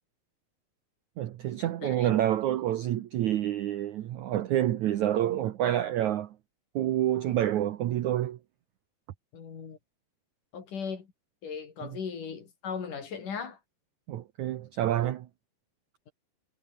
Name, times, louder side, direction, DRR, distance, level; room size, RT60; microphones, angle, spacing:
voice 1, 1.2-6.4 6.8-8.4 11.8-12.0 14.1-15.3, right 12 dB, 75° right, 1.8 m, -28 dB
voice 2, 1.8-2.1 9.3-9.8 10.5-11.1 11.4-13.6, left 6 dB, 50° left, 4.7 m, -37 dB
omnidirectional pair, 4.8 m